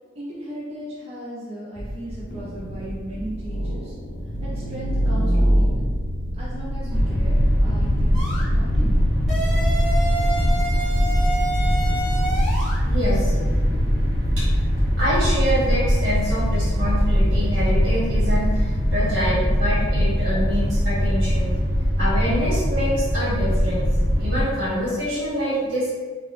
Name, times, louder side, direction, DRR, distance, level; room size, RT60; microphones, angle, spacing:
voice 1, 0.2-3.9 4.4-5.8 6.3-9.1, right 1 dB, 30° right, -7 dB, 0.5 m, -36 dB
sound 1, 1.8-14.5, equal, 45° left, 0.6 m, -28 dB
sound 2, 6.9-24.4, equal, 50° right, 1.5 m, -21 dB
sound 3, 8.1-8.5 9.3-12.8, right 2 dB, ahead, 0.9 m, -28 dB
voice 2, 12.8-13.4 14.4-14.6 15.0-23.9 24.1-25.9, equal, 75° right, -7 dB, 1.3 m, -26 dB
3.2 x 2.2 x 3.2 m, 1.5 s
head